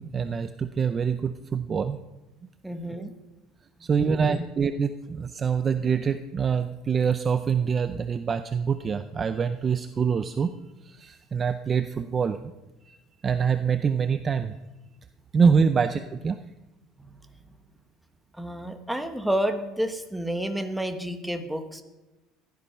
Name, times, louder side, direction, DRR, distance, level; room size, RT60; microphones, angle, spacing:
voice 1, 0.0-2.0 3.8-10.5 10.8-12.5 12.9-13.0 13.2-14.5 15.3-16.4, right 6 dB, 25° right, 10 dB, 0.5 m, -25 dB
voice 2, 2.6-3.1 4.1-4.5 17.0-17.2 18.4-21.8, right 1 dB, ahead, 6 dB, 1.0 m, -30 dB
15.0 x 12.0 x 5.6 m, 1.1 s
cardioid pair, 160°, 0 cm